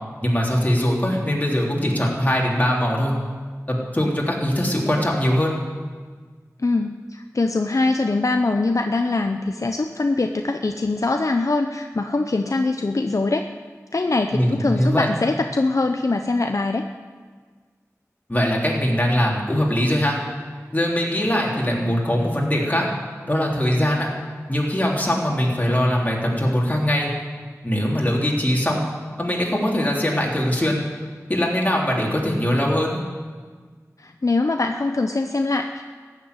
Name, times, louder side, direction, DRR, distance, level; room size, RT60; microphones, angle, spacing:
voice 1, 0.2-3.1 3.7-5.6 14.3-15.1 18.3-20.2 20.7-22.9 23.3-24.1 24.5-27.1 27.6-28.9 29.2-30.9 31.3-33.0, equal, 25° left, -3 dB, 3.4 m, -21 dB
voice 2, 6.6-13.5 13.9-16.8 34.0-35.8, left 3 dB, 65° left, 5 dB, 0.6 m, -23 dB
15.0 x 7.5 x 9.7 m, 1.6 s
wide cardioid pair, 50°, 6 cm